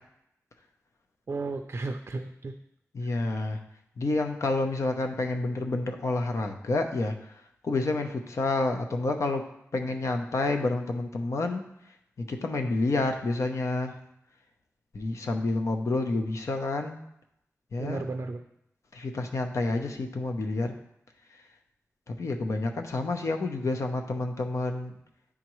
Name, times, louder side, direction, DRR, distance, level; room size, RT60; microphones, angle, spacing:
voice 1, 1.3-2.5 3.0-3.1 17.8-18.4, right 3 dB, 50° right, 5 dB, 0.4 m, -34 dB
voice 2, 2.9-3.6 4.0-7.1 7.6-9.4 9.7-11.7 12.2-13.9 14.9-17.0 17.7-18.0 18.9-20.7 22.1-24.9, left 2 dB, 65° left, 4 dB, 0.7 m, -29 dB
10.0 x 3.7 x 3.1 m, 0.78 s
wide cardioid pair, 85°, 5 cm